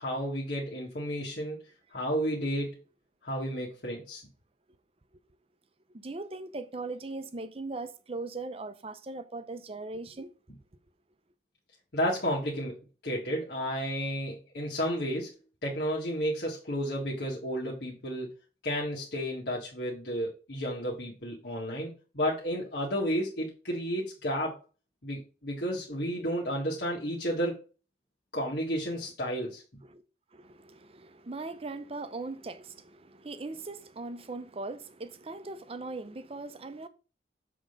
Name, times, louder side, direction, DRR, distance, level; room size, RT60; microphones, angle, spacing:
voice 1, 0.0-1.6 1.9-2.8 3.2-4.2 11.9-15.3 15.6-18.3 18.6-24.6 25.0-27.6 28.3-29.6, equal, 65° left, 1.9 m, -32 dB
voice 2, 5.9-10.3 29.8-30.0 30.3-36.9, right 3 dB, 35° right, 0.6 m, -39 dB
7.4 x 3.8 x 5.2 m
head